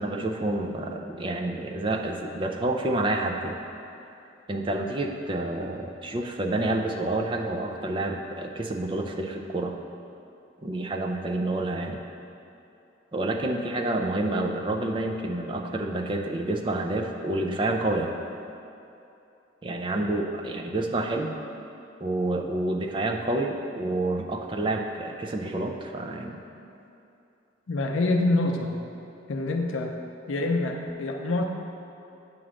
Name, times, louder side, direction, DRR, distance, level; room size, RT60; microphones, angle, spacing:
voice 1, 0.0-3.6 4.5-9.8 10.6-12.0 13.1-18.1 19.6-21.4 22.0-26.4, right 2 dB, 25° right, 3 dB, 0.4 m, -28 dB
voice 2, 27.7-28.8 29.3-29.9 30.3-31.4, left 2 dB, 80° left, 3 dB, 0.5 m, -26 dB
8.5 x 3.0 x 6.1 m, 2.7 s
head